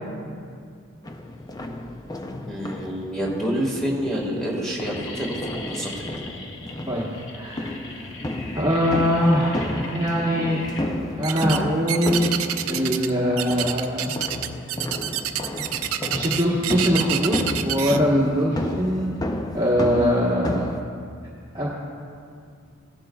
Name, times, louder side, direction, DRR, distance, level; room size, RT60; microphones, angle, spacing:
sound 1, 1.0-20.8, left 1 dB, 20° left, 0.4 m, -32 dB
sound 2, 2.2-2.7 3.3-3.4 3.7-4.1 4.3-13.3, left 2 dB, 60° left, 0.9 m, -40 dB
voice 1, 2.5-6.1, equal, ahead, -4 dB, 1.6 m, -28 dB
voice 2, 7.3-7.8 8.5-10.6 11.2-12.3 12.6-14.1 16.1-20.7 21.5-21.7, equal, 20° right, -6 dB, 1.2 m, -22 dB
sound 3, 11.2-11.6 11.9-13.1 13.4-18.0, right 11 dB, 80° right, 0.5 m, -27 dB
16.0 x 11.5 x 2.3 m, 2.3 s
head